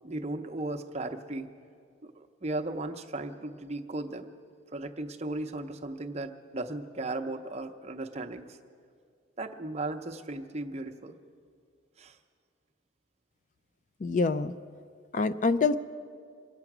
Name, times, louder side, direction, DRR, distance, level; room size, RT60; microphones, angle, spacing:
voice 1, 0.0-1.5 2.0-4.3 4.7-8.6 9.4-11.2 12.0-12.2, right 2 dB, 35° right, 6 dB, 0.7 m, -36 dB
voice 2, 14.0-14.5 15.1-15.8, left 4 dB, 40° left, 13 dB, 0.4 m, -25 dB
24.5 x 8.9 x 6.0 m, 2.2 s
head